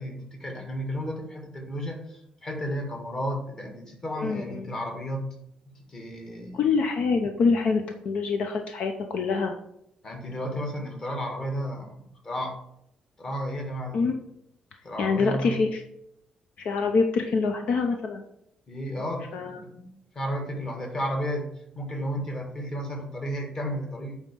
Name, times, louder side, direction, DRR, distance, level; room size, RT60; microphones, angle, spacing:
voice 1, 0.0-5.3 5.9-6.6 10.0-12.6 13.2-14.0 14.8-15.6 18.7-24.2, equal, 25° left, 2 dB, 1.7 m, -33 dB
voice 2, 4.2-4.6 6.5-9.5 13.9-14.2 15.0-15.8 16.6-18.2 19.3-19.6, left 4 dB, 60° left, 5 dB, 0.7 m, -25 dB
9.1 x 3.7 x 6.9 m, 0.76 s
cardioid pair, 170°, 2 cm